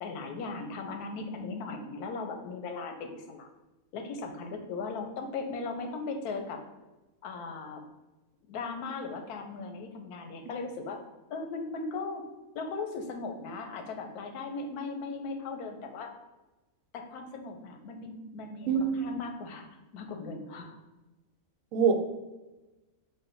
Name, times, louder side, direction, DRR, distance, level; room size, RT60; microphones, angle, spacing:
voice 1, 0.0-3.5 3.9-6.6 7.2-7.8 8.5-11.0 11.3-12.2 12.5-16.1 16.9-19.7 19.9-20.8, left 4 dB, 90° left, 5 dB, 1.2 m, -38 dB
voice 2, 18.7-19.2 21.7-21.9, right 6 dB, 70° right, 5 dB, 0.9 m, -25 dB
4.7 x 2.2 x 4.4 m, 1.1 s
omnidirectional pair, 1.6 m